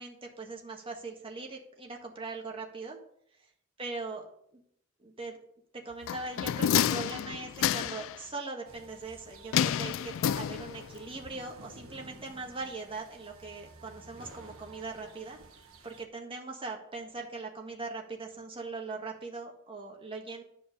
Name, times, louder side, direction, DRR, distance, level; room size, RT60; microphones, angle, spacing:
voice 1, 0.0-3.0 3.8-4.2 4.5-4.6 5.0-5.4 5.8-15.4 15.8-20.4, right 3 dB, 25° right, 1 dB, 1.6 m, -40 dB
sound 1, 6.1-8.2 9.5-11.0 11.3-11.4, left 9 dB, 65° left, 0.3 m, -29 dB
sound 2, 8.6-16.0, right 2 dB, 80° right, 1.3 m, -53 dB
10.5 x 4.7 x 6.6 m, 0.69 s
head